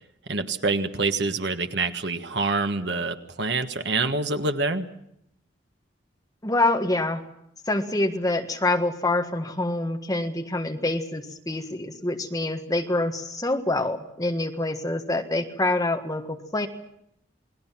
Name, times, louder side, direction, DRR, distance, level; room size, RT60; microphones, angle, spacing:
voice 1, 0.3-4.9, right 3 dB, 65° right, 8 dB, 1.5 m, -26 dB
voice 2, 6.4-7.2 7.7-16.7, left 2 dB, 20° left, 4 dB, 1.6 m, -26 dB
28.5 x 20.0 x 5.9 m, 0.77 s
head